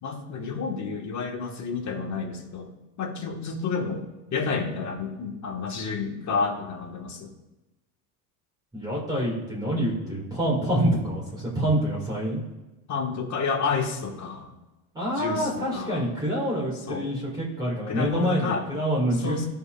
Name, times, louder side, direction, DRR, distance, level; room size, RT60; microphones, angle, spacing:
voice 1, 0.0-2.7 3.0-4.1 4.3-7.3 12.9-14.5 15.2-16.0 16.9-17.1 17.9-18.6 19.1-19.5, left 4 dB, 35° left, 1 dB, 1.8 m, -30 dB
voice 2, 8.7-12.4 14.9-19.4, right 1 dB, 10° right, -6 dB, 2.5 m, -26 dB
14.5 x 5.7 x 2.6 m, 1.0 s
supercardioid pair, 115°, 46 cm